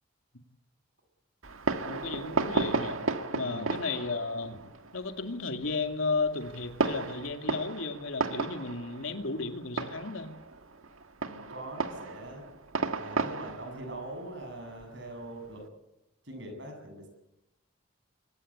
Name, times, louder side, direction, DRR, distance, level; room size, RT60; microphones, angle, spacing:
Fireworks, 1.4-15.6, right 3 dB, 85° right, 1.7 m, -35 dB
voice 1, 1.8-3.0 3.3-4.6 4.9-10.3, left 3 dB, 80° left, 6 dB, 2.6 m, -34 dB
voice 2, 3.4-3.7 11.2-12.4 12.9-15.7 16.2-17.1, right 1 dB, 60° right, 5 dB, 7.7 m, -42 dB
24.0 x 19.5 x 8.9 m, 0.90 s
head